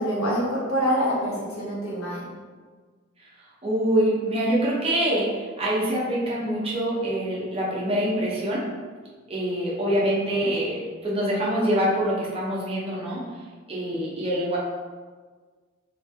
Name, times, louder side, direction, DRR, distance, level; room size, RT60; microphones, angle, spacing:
voice 1, 0.0-2.2, equal, 80° left, -6 dB, 1.3 m, -25 dB
voice 2, 3.6-8.6 9.3-10.8 11.0-13.2 13.7-14.6, right 1 dB, 25° right, -6 dB, 0.8 m, -25 dB
3.4 x 3.2 x 3.3 m, 1.5 s
head